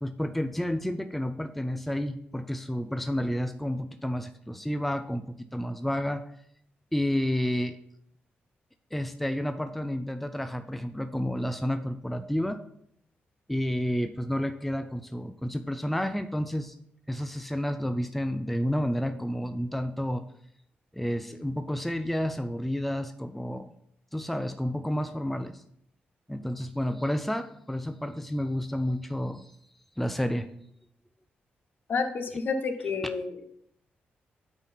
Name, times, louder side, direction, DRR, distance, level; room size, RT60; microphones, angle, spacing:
voice 1, 0.0-6.3 6.9-7.8 8.9-12.6 13.5-16.8 17.1-20.2 20.9-23.7 24.1-25.6 26.3-29.5 30.0-30.5 33.0-33.1, equal, 5° left, 9 dB, 0.5 m, -30 dB
voice 2, 31.9-33.3, left 4 dB, 60° left, 7 dB, 0.9 m, -29 dB
8.9 x 4.1 x 4.2 m, 0.72 s
cardioid pair, 80°, 4 cm